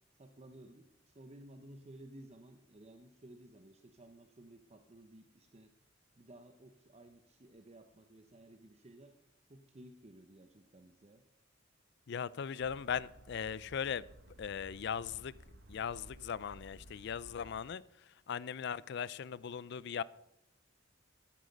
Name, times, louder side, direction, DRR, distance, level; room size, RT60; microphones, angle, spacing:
voice 1, 0.2-5.7 6.2-9.1 9.5-11.2, right 1 dB, 35° right, 7 dB, 0.8 m, -56 dB
voice 2, 12.1-14.1 14.4-15.3 15.7-17.8 18.3-20.0, left 7 dB, 60° left, 21 dB, 0.4 m, -38 dB
sound 1, 12.6-17.6, right 1 dB, 60° right, 1.3 m, -56 dB
13.5 x 10.0 x 5.2 m, 0.81 s
head